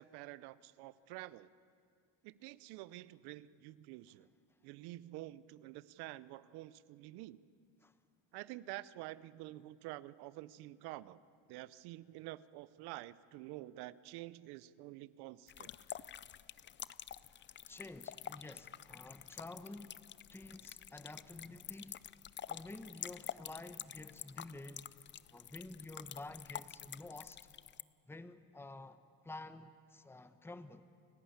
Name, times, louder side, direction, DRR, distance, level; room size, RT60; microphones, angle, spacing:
voice 1, 0.0-1.5 2.2-4.3 4.6-7.4 8.3-11.2 11.5-15.7, right 17 dB, 75° right, 0.7 m, -49 dB
sound 1, 15.5-27.8, left 10 dB, 30° left, 0.5 m, -48 dB
voice 2, 17.7-20.0 20.3-22.0 22.5-24.9 25.3-27.4 28.1-30.9, left 2 dB, 5° left, 0.9 m, -50 dB
29.5 x 11.5 x 8.7 m
supercardioid pair, 90°, 39 cm